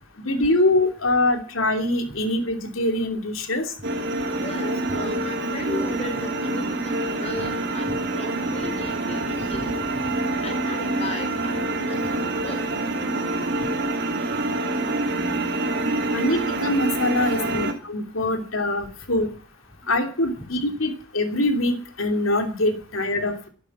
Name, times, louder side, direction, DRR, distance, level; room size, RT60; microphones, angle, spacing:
voice 1, 0.2-3.6 16.1-19.3 19.9-23.5, left 1 dB, 85° left, 5 dB, 2.8 m, -23 dB
sound 1, 3.8-17.7, right 2 dB, 60° right, 3.2 m, -26 dB
voice 2, 4.3-9.7 10.4-12.6 17.5-17.6 20.4-20.5, left 1 dB, 30° left, 6 dB, 4.3 m, -36 dB
12.0 x 11.5 x 9.3 m, 0.41 s
head